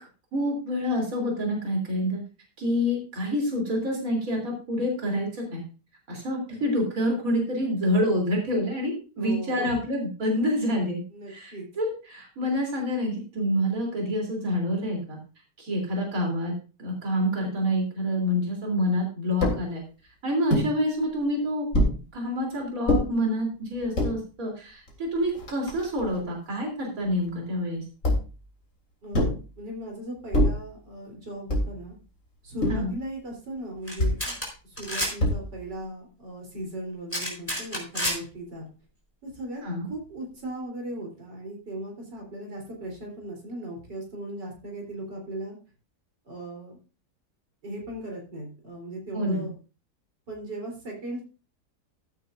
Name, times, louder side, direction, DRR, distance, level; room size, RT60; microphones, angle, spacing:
voice 1, 0.3-2.2 2.6-5.6 6.1-11.0 11.3-15.2 15.6-16.5 16.8-19.8 20.2-21.7 22.1-27.8 32.7-33.0 39.6-39.9 49.1-49.5, equal, 55° right, 0 dB, 3.9 m, -27 dB
voice 2, 9.2-9.8 11.1-11.7 29.0-31.9 32.4-34.4 34.6-38.7 39.2-45.6 46.3-46.8 47.6-49.5 50.3-51.2, right 1 dB, 85° right, 0 dB, 4.3 m, -37 dB
sound 1, 19.4-19.6 20.5-20.7 21.7-22.0 22.9-23.0 23.8-24.1 24.9-25.0 25.2-26.2 28.0-28.4 29.1-29.5 30.3-30.7 31.5-31.8 32.6-32.9 34.0-34.2 35.2-35.6, left 1 dB, 45° left, 3.5 m, -24 dB
sound 2, 33.9-34.0 34.2-34.5 34.8-35.1 37.1-38.2, equal, 5° left, 4.0 m, -29 dB
14.5 x 9.6 x 2.6 m, 0.35 s
omnidirectional pair, 1.8 m